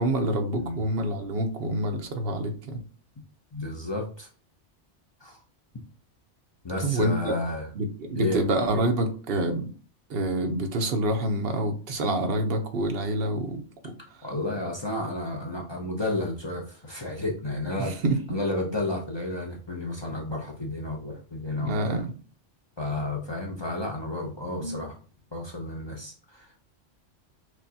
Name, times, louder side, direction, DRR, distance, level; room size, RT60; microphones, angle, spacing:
voice 1, 0.0-2.8 6.8-7.4 7.7-9.7 10.1-14.3 17.8-18.2 21.6-22.1 24.6-24.8, right 1 dB, 60° right, 5 dB, 0.9 m, -27 dB
voice 2, 3.5-4.3 5.2-5.4 6.6-7.7 8.2-8.4 14.2-22.0 22.8-25.0 25.3-26.5, left 2 dB, 30° left, 0 dB, 0.5 m, -32 dB
6.3 x 2.3 x 2.7 m, 0.39 s
omnidirectional pair, 1.2 m